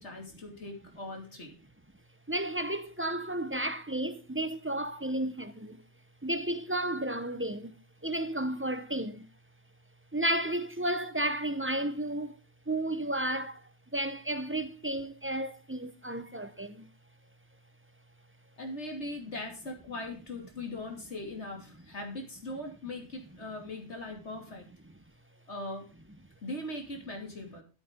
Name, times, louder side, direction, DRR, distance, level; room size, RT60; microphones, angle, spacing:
voice 1, 0.0-1.5 18.6-24.7 25.5-25.9 26.4-27.6, left 2 dB, 70° left, 3.0 m, -40 dB
voice 2, 2.3-5.8 6.2-7.7 8.0-9.3 10.1-12.4 12.7-13.6 13.9-16.9, right 1 dB, 15° right, 0.7 m, -32 dB
14.0 x 7.8 x 3.7 m
omnidirectional pair, 1.2 m